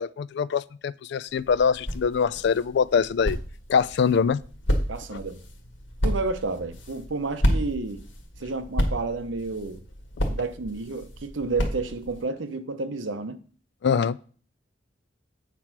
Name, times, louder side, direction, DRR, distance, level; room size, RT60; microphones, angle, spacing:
voice 1, 0.0-3.4 3.7-4.4 5.1-5.2 13.8-14.2, left 6 dB, 65° left, 0.3 m, -23 dB
sound 1, 1.3-12.2, equal, 90° left, 1.7 m, -31 dB
voice 2, 4.9-5.4 6.0-8.0 8.4-9.8 10.3-13.4, right 3 dB, 85° right, 0.8 m, -31 dB
8.4 x 4.4 x 5.9 m
head